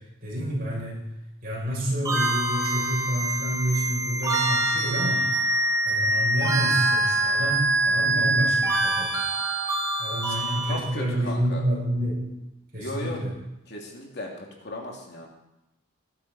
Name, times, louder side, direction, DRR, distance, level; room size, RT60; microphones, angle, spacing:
voice 1, 0.2-1.0 1.4-5.2 5.9-9.3 10.0-12.3 12.7-13.3, right 1 dB, 45° right, -5 dB, 7.4 m, -28 dB
sound 1, 2.0-10.8, right 2 dB, 20° right, 3.6 m, -25 dB
voice 2, 10.7-11.6 12.8-13.2 13.7-15.3, left 1 dB, 55° left, 0 dB, 2.9 m, -36 dB
19.5 x 11.5 x 4.3 m, 0.91 s
head